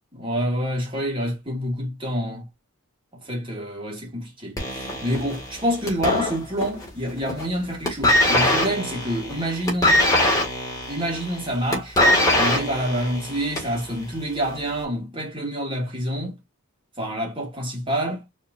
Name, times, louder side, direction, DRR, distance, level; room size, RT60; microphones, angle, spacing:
voice 1, 0.1-2.4 3.2-10.0 10.9-12.0 12.3-16.4 17.0-18.2, equal, 25° right, 2.4 m, -27 dB
sound 1, 4.6-6.9 7.2-7.6 7.8-13.8 14.6-14.7, left 1 dB, 15° left, 2.2 m, -22 dB
4.6 x 3.6 x 2.6 m
head